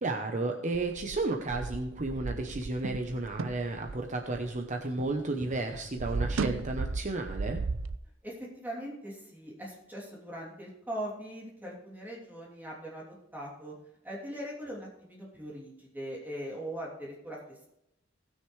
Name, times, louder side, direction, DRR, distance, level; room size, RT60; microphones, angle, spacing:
voice 1, 0.0-7.6, right 2 dB, 40° right, 3 dB, 0.9 m, -33 dB
sound 1, 0.7-5.2 5.4-8.0, right 4 dB, 75° right, 0.5 m, -35 dB
voice 2, 8.2-13.0 13.3-13.7 14.0-17.4, right 1 dB, 10° right, -4 dB, 3.0 m, -40 dB
19.0 x 6.6 x 3.3 m, 0.81 s
head